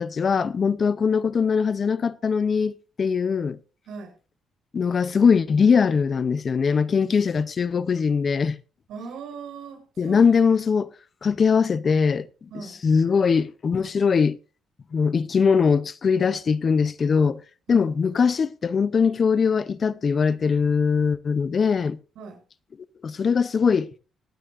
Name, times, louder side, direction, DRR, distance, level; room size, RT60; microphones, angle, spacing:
voice 1, 0.0-2.7 3.0-3.6 4.7-8.6 10.0-10.9 11.2-12.3 12.5-14.4 14.9-17.4 17.7-22.0 23.0-23.9, left 5 dB, 45° left, 0.7 m, -21 dB
voice 2, 8.9-10.2 12.5-12.8 17.7-17.9 22.1-22.4, right 5 dB, 80° right, 6.8 m, -39 dB
25.0 x 9.3 x 2.6 m
cardioid pair, 90°, 0 cm